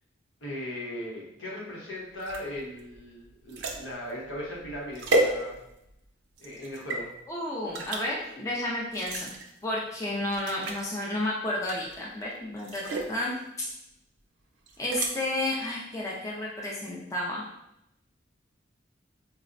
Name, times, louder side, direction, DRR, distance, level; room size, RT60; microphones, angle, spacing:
voice 1, 0.4-5.6 6.4-7.1, left 1 dB, 80° left, -4 dB, 0.9 m, -38 dB
sound 1, 2.2-5.9 6.4-7.0 7.7-8.0 8.9-9.5 9.9-10.0 10.3-10.9 11.6-12.1 12.6-13.1 14.7-15.1, right 2 dB, 75° right, 0.5 m, -32 dB
voice 2, 7.3-9.3 9.6-13.7 14.8-17.4, left 1 dB, 15° left, -4 dB, 0.4 m, -31 dB
4.1 x 2.0 x 2.5 m, 0.83 s
head